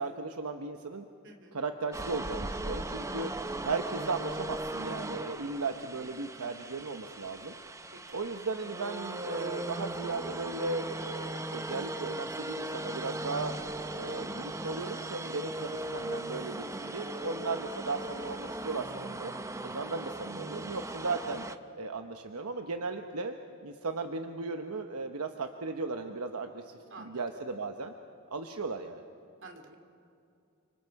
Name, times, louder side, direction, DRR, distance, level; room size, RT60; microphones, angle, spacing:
voice 1, 0.0-1.0 1.5-3.3 3.6-7.5 8.1-13.5 14.0-19.3 19.6-21.5 21.7-23.3 23.6-27.9 28.3-29.0, right 3 dB, 85° right, 6 dB, 1.0 m, -36 dB
voice 2, 1.2-1.6 3.2-3.3 7.9-8.3 26.9-27.2 29.4-29.7, right 3 dB, 55° right, 4 dB, 2.8 m, -50 dB
sound 1, 1.9-21.6, right 2 dB, 15° right, 0.6 m, -38 dB
29.5 x 25.5 x 4.8 m, 2.5 s
head